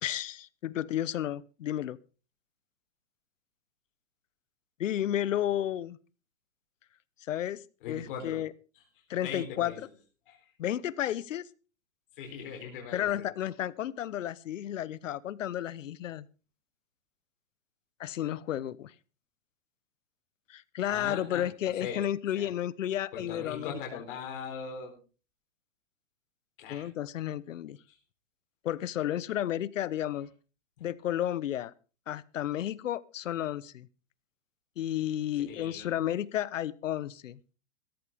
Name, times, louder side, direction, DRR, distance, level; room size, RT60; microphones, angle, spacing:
voice 1, 0.0-2.0 4.8-6.0 7.3-8.5 9.1-9.9 10.6-11.5 12.9-16.2 18.0-18.9 20.5-23.7 26.7-27.8 28.6-30.3 30.8-31.7 32.1-33.9 34.8-37.4, left 11 dB, 70° left, 20 dB, 1.0 m, -32 dB
voice 2, 7.8-8.4 9.2-9.8 10.3-10.5 12.2-13.3 20.9-22.1 22.4-22.5 23.1-25.0 26.6-26.9 27.9-28.0 30.8-30.9 35.5-35.9, left 6 dB, 40° left, 1 dB, 4.0 m, -40 dB
16.0 x 14.0 x 3.5 m, 0.35 s
hypercardioid pair, 170°, 40 cm